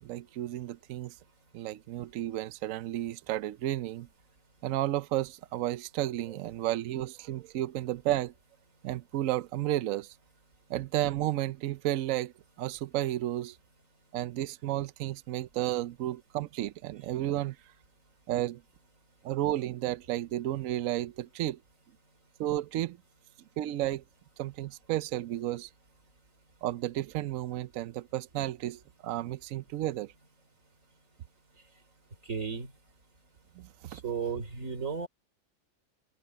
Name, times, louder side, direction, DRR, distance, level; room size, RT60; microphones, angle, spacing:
voice 1, 0.0-1.1 1.5-4.1 4.6-8.3 8.8-10.1 10.7-12.3 12.6-13.6 14.1-17.6 18.3-18.6 19.2-21.6 22.4-23.0 23.6-24.0 24.4-25.7 26.6-30.1 33.6-34.0, right 14 dB, 75° right, 0.7 m, -32 dB
voice 2, 32.3-32.7 33.9-35.1, right 6 dB, 45° right, 3.4 m, -34 dB
open air
omnidirectional pair, 2.0 m